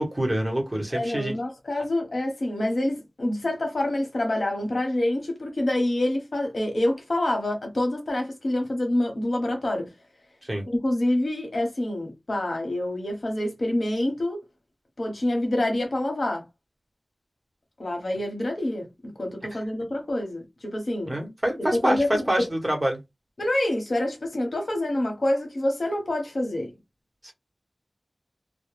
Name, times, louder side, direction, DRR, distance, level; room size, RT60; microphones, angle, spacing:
voice 1, 0.0-1.4 10.5-10.6 21.1-23.0 27.2-27.3, right 1 dB, 25° right, 1.0 m, -26 dB
voice 2, 0.9-9.9 10.6-14.4 15.0-16.4 17.8-21.2 21.7-22.5 23.4-26.7, left 1 dB, 80° left, 0.9 m, -27 dB
2.2 x 2.1 x 3.1 m
wide cardioid pair, 45°, 0 cm